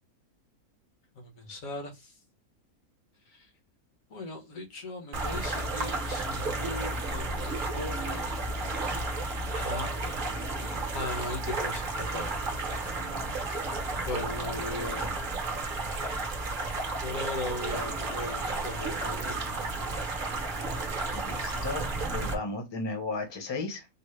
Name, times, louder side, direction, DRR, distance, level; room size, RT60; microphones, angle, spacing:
voice 1, 1.1-2.1 3.3-3.5 4.1-8.3 9.6-9.9 10.9-12.3 14.0-15.4 17.0-19.6, left 2 dB, 65° left, 1.4 m, -38 dB
sound 1, 5.1-22.3, right 2 dB, 45° right, 0.8 m, -32 dB
voice 2, 21.1-23.9, left 3 dB, 25° left, 0.7 m, -35 dB
4.5 x 2.0 x 3.1 m
omnidirectional pair, 1.5 m